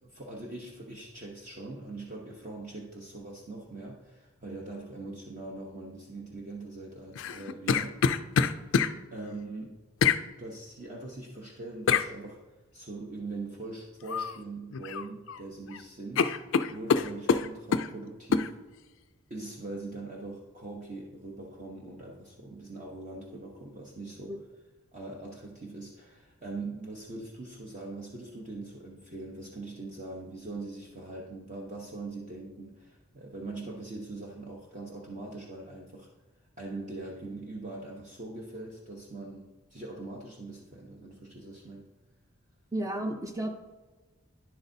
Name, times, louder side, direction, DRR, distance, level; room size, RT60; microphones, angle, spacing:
voice 1, 0.0-8.0 8.6-9.8 10.4-12.4 12.7-16.3 16.7-18.5 19.3-24.4 24.9-36.1 36.6-41.8, right 2 dB, 35° right, -2 dB, 0.8 m, -42 dB
sound 1, 7.2-8.9 10.0-10.2 11.9-12.1 14.1-14.4 14.7-15.4 15.7-15.8 16.2-17.9 18.3-18.5, left 6 dB, 55° left, 0.3 m, -25 dB
voice 2, 42.7-43.5, right 1 dB, 15° right, 4 dB, 0.5 m, -32 dB
10.5 x 7.8 x 2.7 m, 1.2 s
head